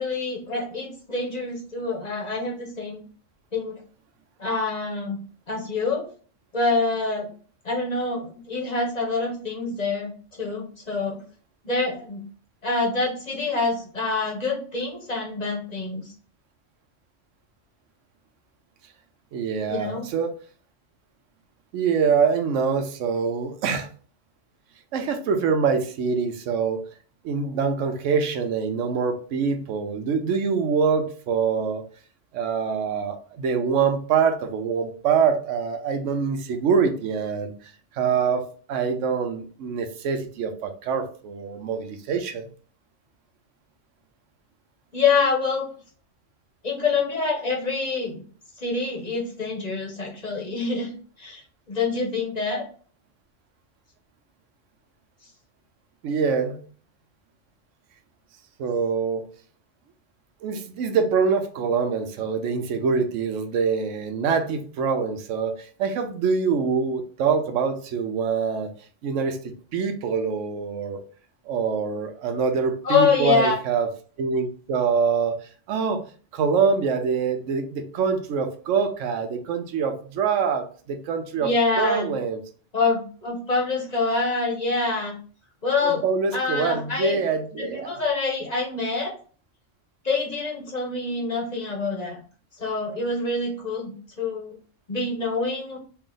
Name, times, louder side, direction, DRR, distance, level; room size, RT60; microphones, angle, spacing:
voice 1, 0.0-3.0 3.5-3.8 4.4-5.2 5.5-6.0 6.5-7.3 7.6-11.2 11.6-12.2 12.6-16.1 19.7-20.0 44.9-45.7 46.6-48.2 48.6-52.7 72.8-73.5 81.4-82.1 82.7-85.2 85.6-86.0 86.3-87.2 87.6-89.1 90.0-92.2 92.6-94.6 94.9-95.8, left 4 dB, 40° left, -2 dB, 0.9 m, -26 dB
voice 2, 19.3-20.3 21.7-23.9 24.9-26.8 27.2-31.8 32.3-42.5 56.0-56.6 58.6-59.2 60.4-68.7 69.0-71.0 71.5-73.9 74.2-76.0 76.3-81.5 81.8-82.4 85.8-87.9, right 6 dB, 85° right, 7 dB, 0.9 m, -25 dB
3.3 x 2.5 x 3.7 m, 0.42 s
omnidirectional pair, 1.3 m